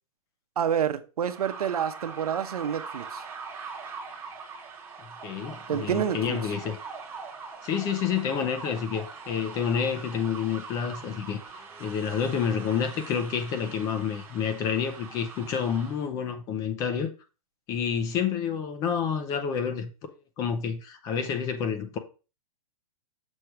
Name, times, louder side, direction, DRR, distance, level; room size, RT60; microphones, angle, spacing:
voice 1, 0.6-3.2 5.7-6.4, right 8 dB, 90° right, 0.8 m, -28 dB
sound 1, 1.2-16.0, right 5 dB, 10° right, 1.2 m, -42 dB
voice 2, 5.2-6.8 7.6-17.1 17.7-19.9 20.4-22.0, left 7 dB, 20° left, 0.6 m, -29 dB
6.3 x 3.3 x 5.7 m
hypercardioid pair, 160°, 19 cm